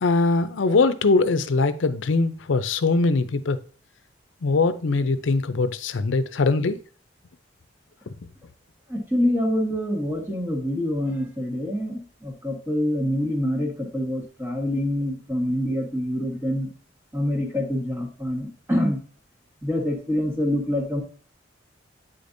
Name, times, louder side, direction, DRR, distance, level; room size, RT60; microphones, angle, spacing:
voice 1, 0.0-3.6 4.4-6.8, left 3 dB, 85° left, 0.5 m, -21 dB
voice 2, 8.9-16.7 17.1-19.0 19.6-21.0, left 1 dB, 10° right, 1.3 m, -26 dB
8.6 x 5.1 x 2.6 m
head